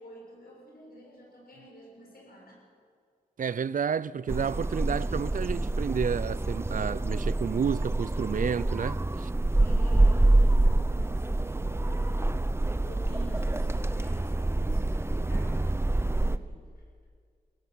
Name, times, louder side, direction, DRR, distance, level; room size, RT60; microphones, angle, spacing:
voice 1, 0.0-2.7 9.6-12.4 12.8-16.8, equal, 85° left, 6.9 m, -49 dB
voice 2, 3.4-9.3, right 7 dB, 60° right, 0.5 m, -30 dB
sound 1, 4.3-16.4, right 2 dB, 15° right, 0.7 m, -26 dB
23.5 x 16.5 x 7.9 m
cardioid pair, 60°, 15 cm